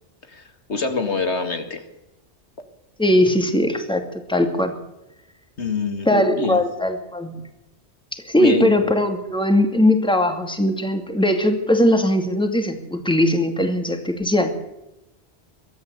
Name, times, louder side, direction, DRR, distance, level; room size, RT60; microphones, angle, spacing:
voice 1, 0.7-1.9 5.6-6.6 8.4-8.7, left 4 dB, 75° left, 7 dB, 2.3 m, -25 dB
voice 2, 3.0-4.7 6.1-7.3 8.1-14.5, left 1 dB, 5° left, 6 dB, 2.4 m, -20 dB
23.5 x 13.5 x 8.2 m, 0.92 s
omnidirectional pair, 1.2 m